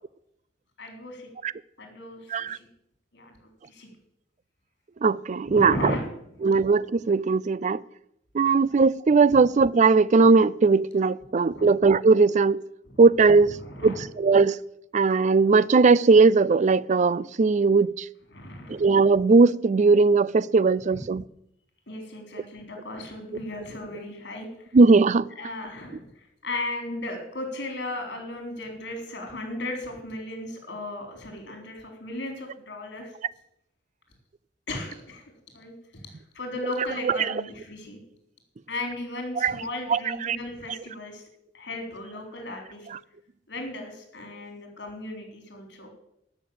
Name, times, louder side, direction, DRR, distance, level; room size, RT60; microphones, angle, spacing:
voice 1, 0.8-1.3 1.8-2.7 3.1-3.3 3.6-3.9 5.4-6.0 11.5-11.7 13.6-14.0 18.3-18.9 20.9-21.0 21.9-24.5 25.4-26.0 26.4-33.1 34.7-35.2 35.5-36.0 36.3-38.0 38.7-41.2 41.5-42.9 43.5-45.9, left 2 dB, 65° left, 3.9 m, -36 dB
voice 2, 5.0-5.9 6.4-7.8 8.3-12.6 13.0-13.6 13.8-14.6 14.9-18.1 18.7-21.2 24.7-25.3 37.0-37.3 39.4-39.6 39.9-40.4 42.9-43.0, right 4 dB, 40° right, 0.4 m, -19 dB
14.0 x 6.7 x 8.6 m
head